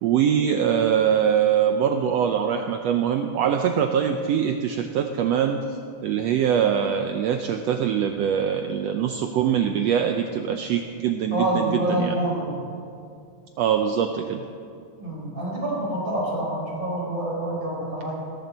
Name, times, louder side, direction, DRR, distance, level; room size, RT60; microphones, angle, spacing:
voice 1, 0.0-12.2 13.6-14.4, right 8 dB, 80° right, 5 dB, 1.5 m, -23 dB
voice 2, 11.3-12.6 15.0-18.2, right 1 dB, 25° right, -5 dB, 4.8 m, -27 dB
18.0 x 14.0 x 4.1 m, 2.4 s
omnidirectional pair, 3.6 m